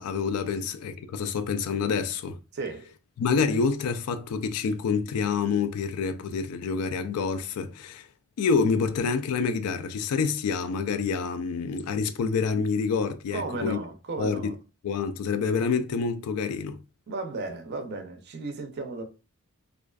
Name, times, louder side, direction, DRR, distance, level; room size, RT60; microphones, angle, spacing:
voice 1, 0.0-2.4 3.2-8.1 8.4-13.8 14.2-14.5 14.8-16.8, left 5 dB, 80° left, 0.3 m, -27 dB
voice 2, 2.5-2.9 13.3-14.6 17.1-19.0, right 3 dB, 50° right, 0.4 m, -34 dB
2.4 x 2.3 x 2.2 m
head